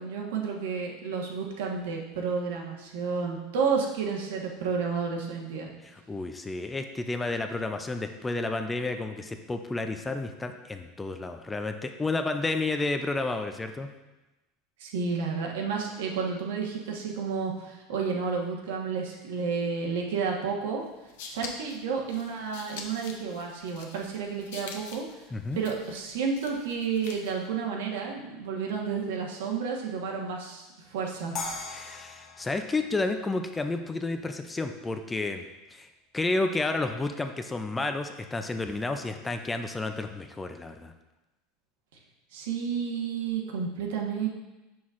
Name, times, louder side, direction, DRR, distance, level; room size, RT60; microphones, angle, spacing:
voice 1, 0.0-5.7 14.8-20.8 21.3-25.0 25.5-31.4 42.3-44.3, right 5 dB, 90° right, 0 dB, 1.2 m, -31 dB
voice 2, 5.8-13.9 25.3-25.6 31.7-40.9, left 2 dB, 10° left, 6 dB, 0.3 m, -31 dB
sound 1, 20.9-27.5, left 5 dB, 80° left, 0.8 m, -45 dB
sound 2, 31.4-34.4, left 3 dB, 40° left, 0.8 m, -40 dB
7.1 x 6.0 x 2.5 m, 1.0 s
supercardioid pair, 165°, 0 cm